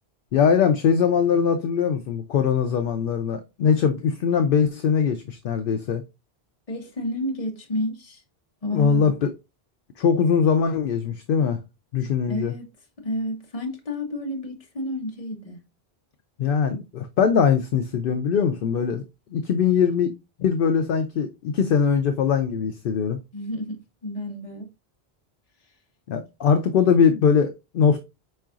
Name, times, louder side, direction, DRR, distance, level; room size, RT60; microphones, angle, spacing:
voice 1, 0.3-6.0 8.7-9.3 10.0-11.6 11.9-12.5 16.4-19.0 19.3-20.1 20.4-23.2 26.1-28.0, left 6 dB, 65° left, 0.7 m, -21 dB
voice 2, 6.7-8.2 8.6-9.1 12.3-12.7 13.0-15.6 23.3-24.7, left 1 dB, 35° left, 1.1 m, -30 dB
4.6 x 4.4 x 2.4 m
omnidirectional pair, 1.1 m